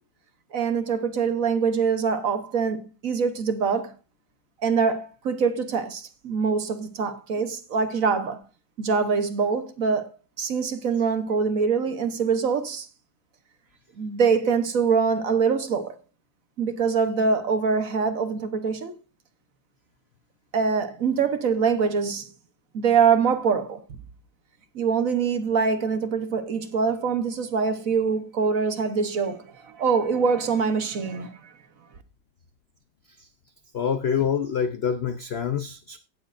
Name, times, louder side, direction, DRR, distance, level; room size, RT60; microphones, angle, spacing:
voice 1, 0.5-3.9 4.6-8.4 8.8-10.1 10.4-12.9 14.0-15.9 16.6-19.0 20.5-22.3 22.7-23.8 24.7-31.4, right 5 dB, 55° right, 1.3 m, -24 dB
voice 2, 33.7-36.0, left 7 dB, 80° left, 0.5 m, -26 dB
17.5 x 7.1 x 2.5 m
omnidirectional pair, 2.0 m